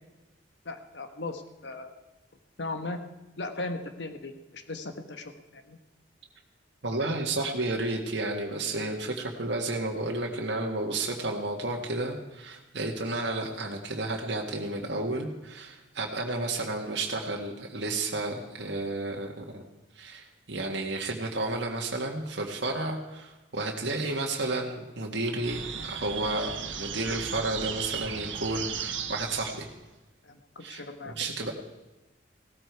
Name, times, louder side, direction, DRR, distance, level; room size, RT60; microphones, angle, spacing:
voice 1, 0.6-1.9 2.6-3.0 3.4-5.8 30.2-31.1, left 2 dB, 65° left, 7 dB, 1.3 m, -38 dB
voice 2, 6.8-19.6 20.0-26.5 26.8-29.7 30.6-31.5, right 2 dB, 65° right, 0 dB, 1.7 m, -32 dB
sound 1, 25.4-29.8, right 7 dB, 80° right, 1.5 m, -36 dB
17.0 x 13.5 x 4.7 m, 1.1 s
head